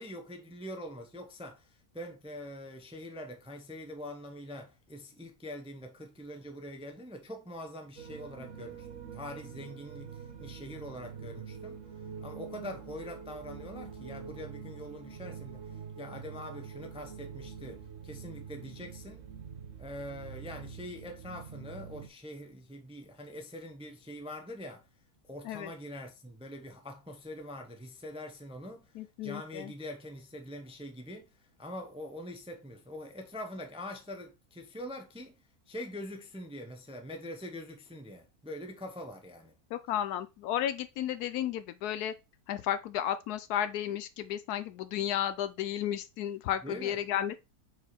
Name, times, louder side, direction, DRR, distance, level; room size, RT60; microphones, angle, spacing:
voice 1, 0.0-11.8 12.2-19.3 19.8-24.8 25.3-28.9 29.2-31.3 31.6-35.4 35.7-39.5 46.6-47.0, left 1 dB, 5° right, 0.5 m, -44 dB
sound 1, 8.0-22.1, right 6 dB, 55° right, 1.3 m, -45 dB
voice 2, 29.0-29.7 39.7-42.1 42.5-47.4, left 11 dB, 85° left, 1.1 m, -33 dB
4.8 x 4.6 x 4.2 m
omnidirectional pair, 1.6 m